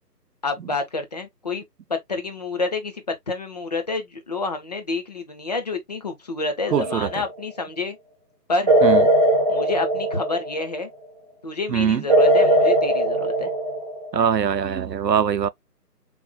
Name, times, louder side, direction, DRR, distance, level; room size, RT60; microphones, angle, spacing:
voice 1, 0.4-1.6 1.9-8.0 8.5-8.7 9.5-10.9 11.4-13.5, left 3 dB, 25° left, 0.9 m, -28 dB
sound 1, 6.7-7.3 8.7-10.7 12.1-14.2, right 1 dB, 20° right, 0.8 m, -19 dB
voice 2, 6.7-7.2 8.8-9.1 11.7-12.0 14.1-15.5, right 8 dB, 85° right, 0.6 m, -22 dB
6.5 x 3.5 x 2.2 m
figure-of-eight pair, 155°, 49 cm